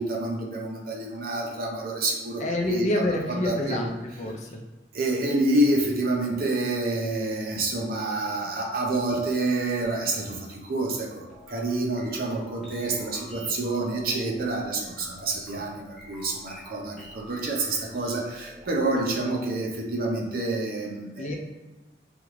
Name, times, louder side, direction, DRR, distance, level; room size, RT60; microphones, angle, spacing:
voice 1, 0.0-3.8 4.9-21.4, right 2 dB, 55° right, 0 dB, 0.7 m, -28 dB
voice 2, 2.4-4.6 21.2-21.4, left 1 dB, 40° left, 1 dB, 0.6 m, -28 dB
sound 1, 11.3-19.0, equal, ahead, 1.0 m, -47 dB
3.6 x 3.4 x 3.2 m, 1.1 s
head